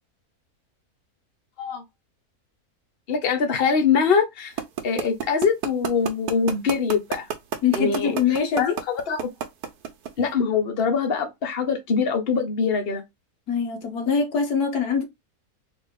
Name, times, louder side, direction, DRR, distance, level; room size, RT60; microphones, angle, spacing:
voice 1, 3.1-4.5 4.8-7.3 7.7-9.3 10.2-13.0, left 6 dB, 45° left, 1.0 m, -23 dB
sound 1, 4.6-10.3, right 8 dB, 85° right, 1.2 m, -27 dB
voice 2, 7.6-8.8 13.5-15.0, left 6 dB, 90° left, 1.4 m, -23 dB
3.3 x 3.0 x 3.6 m
omnidirectional pair, 1.6 m